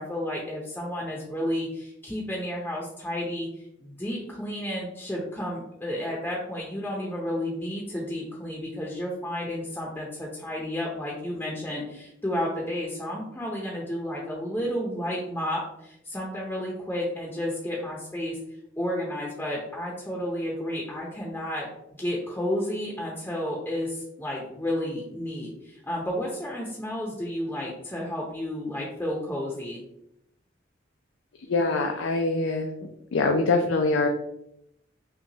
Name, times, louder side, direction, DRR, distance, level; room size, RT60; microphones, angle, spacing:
voice 1, 0.0-18.4 18.8-21.7 22.0-29.8, left 1 dB, 10° left, -3 dB, 0.6 m, -32 dB
voice 2, 31.5-32.7 33.1-34.1, left 3 dB, 85° left, 3 dB, 0.4 m, -23 dB
5.6 x 2.2 x 2.7 m, 0.80 s
head